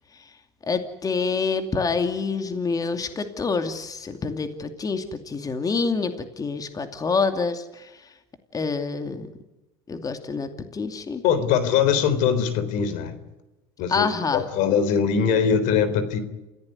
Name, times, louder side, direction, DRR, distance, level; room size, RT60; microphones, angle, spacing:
voice 1, 0.6-8.0 8.5-9.3 9.9-11.2 13.9-14.4, left 4 dB, 25° left, 2.6 m, -27 dB
voice 2, 11.2-13.2 13.8-16.2, left 7 dB, 70° left, 3.8 m, -22 dB
29.0 x 16.0 x 9.6 m
supercardioid pair, 100°, 14 cm